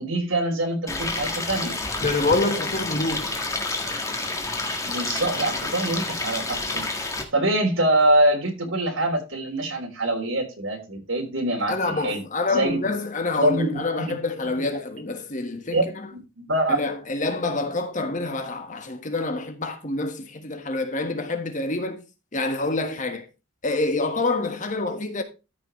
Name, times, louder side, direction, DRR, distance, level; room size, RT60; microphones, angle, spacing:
voice 1, 0.0-1.7 4.8-12.2 12.5-12.9 13.4-14.1 15.7-15.8 16.5-16.8, right 1 dB, 80° right, 3.4 m, -24 dB
Stream, 0.9-7.2, left 2 dB, 15° left, 1.6 m, -29 dB
voice 2, 2.0-3.4 11.7-15.8 16.7-22.0 22.3-23.3 23.6-25.2, left 2 dB, 40° left, 1.4 m, -27 dB
13.5 x 6.0 x 3.1 m
head